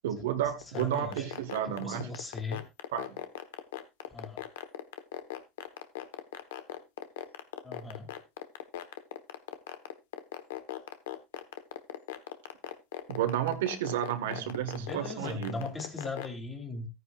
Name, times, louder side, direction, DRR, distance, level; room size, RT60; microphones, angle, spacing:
voice 1, 0.0-2.1 2.9-3.2 13.1-15.6, right 11 dB, 90° right, 1.4 m, -32 dB
sound 1, 0.6-16.3, left 13 dB, 90° left, 1.1 m, -38 dB
voice 2, 0.7-1.3 1.6-2.6 4.1-4.4 7.6-8.1 14.2-16.9, left 3 dB, 20° left, 2.8 m, -39 dB
14.5 x 9.7 x 2.4 m
supercardioid pair, 120°, 0 cm